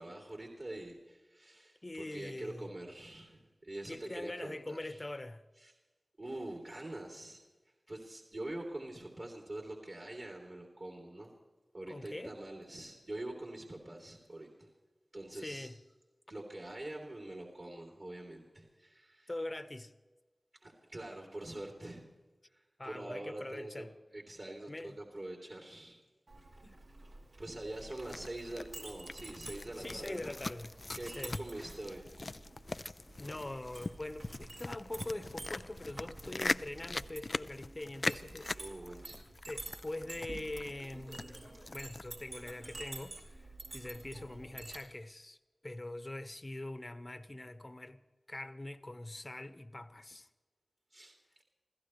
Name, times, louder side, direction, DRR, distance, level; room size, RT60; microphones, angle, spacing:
voice 1, 0.0-5.0 5.6-5.7 6.2-7.4 7.9-11.3 11.7-14.7 15.1-15.7 16.3-19.3 20.6-22.0 22.5-23.9 24.1-26.0 27.4-30.4 30.9-32.1 38.6-39.2 50.9-51.4, right 1 dB, 50° right, 3.0 m, -45 dB
voice 2, 1.8-2.7 3.9-5.4 11.9-12.3 15.3-15.8 19.3-19.9 22.8-23.9 24.7-25.0 26.6-26.8 29.8-30.7 31.0-31.4 33.2-38.5 39.5-45.4 45.6-48.0 48.3-50.3, left 1 dB, 35° left, 1.1 m, -43 dB
Chink clink, 26.3-44.8, right 2 dB, 75° right, 4.3 m, -50 dB
sound 1, 27.7-42.2, left 2 dB, 50° left, 0.4 m, -41 dB
27.0 x 16.0 x 3.2 m
wide cardioid pair, 60°, 0 cm